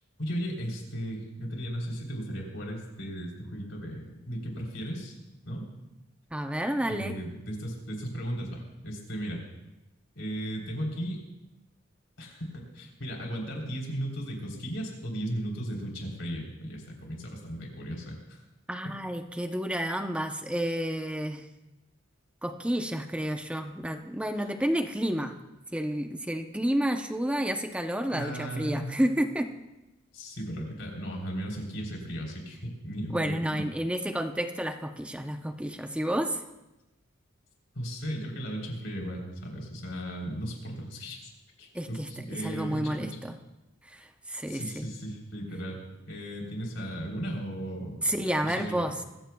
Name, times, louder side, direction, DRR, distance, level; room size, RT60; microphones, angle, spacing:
voice 1, 0.2-5.1 5.5-5.7 6.9-9.4 10.2-11.2 12.2-18.4 28.1-28.9 30.1-33.6 37.8-41.3 41.6-43.2 44.5-45.8 46.1-48.0 48.4-48.8, equal, 70° left, 0 dB, 3.6 m, -36 dB
voice 2, 6.3-7.2 18.7-21.5 22.4-25.4 25.7-29.5 33.1-36.4 41.7-43.4 43.8-45.0 48.0-49.0, equal, 5° right, 6 dB, 0.7 m, -30 dB
22.5 x 15.0 x 2.3 m, 0.96 s
head